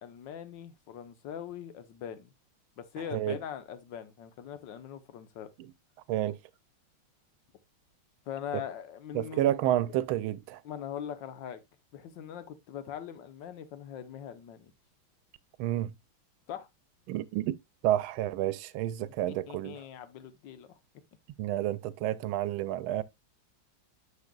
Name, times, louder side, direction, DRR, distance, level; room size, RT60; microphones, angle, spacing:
voice 1, 0.0-2.3 2.8-5.5 8.3-9.6 10.6-11.6 11.9-14.7 16.5-16.7 19.3-20.7, left 9 dB, 65° left, 1.6 m, -41 dB
voice 2, 9.1-10.6 15.6-15.9 17.1-17.6 17.8-19.8 21.4-23.0, right 13 dB, 90° right, 1.4 m, -30 dB
9.7 x 6.7 x 2.3 m
omnidirectional pair, 2.2 m